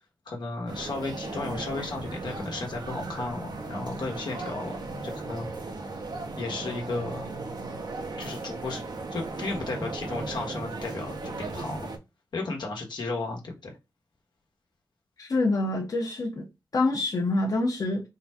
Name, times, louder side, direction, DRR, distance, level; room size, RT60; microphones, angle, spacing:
voice 1, 0.2-4.8 5.0-5.5 6.4-7.2 8.2-8.8 9.1-11.9 12.3-13.8, left 3 dB, 80° left, 1.3 m, -34 dB
sound 1, 0.7-12.0, right 3 dB, 65° right, 0.7 m, -36 dB
voice 2, 15.2-16.4 16.7-18.0, left 2 dB, 55° left, 1.0 m, -26 dB
3.8 x 2.3 x 4.2 m
wide cardioid pair, 105°, 8 cm